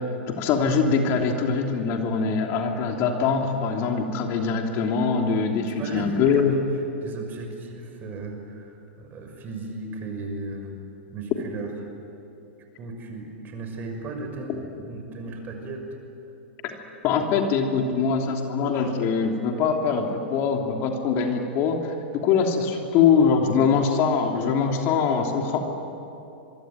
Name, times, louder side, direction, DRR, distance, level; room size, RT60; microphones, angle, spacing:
voice 1, 0.3-6.5 16.6-16.7 17.0-25.6, left 5 dB, 45° left, 2 dB, 3.2 m, -23 dB
voice 2, 5.6-10.8 11.1-11.7 12.8-15.9, right 2 dB, 30° right, 4 dB, 6.1 m, -36 dB
26.5 x 23.0 x 9.3 m, 2.8 s
hypercardioid pair, 110°, 6 cm